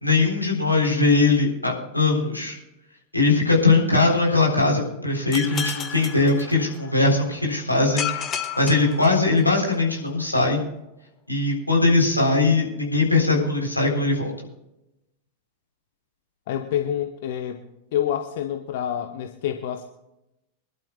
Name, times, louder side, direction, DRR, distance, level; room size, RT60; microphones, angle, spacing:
voice 1, 0.0-2.6 3.1-8.1 8.6-10.6 11.3-14.3, left 3 dB, 85° left, -1 dB, 4.0 m, -20 dB
sound 1, 5.3-7.1 8.0-9.8, left 8 dB, 25° left, 1.4 m, -32 dB
voice 2, 16.5-17.6 17.9-19.8, left 10 dB, 55° left, 6 dB, 1.0 m, -27 dB
25.0 x 11.5 x 2.3 m, 0.89 s
figure-of-eight pair, 90°, 0 cm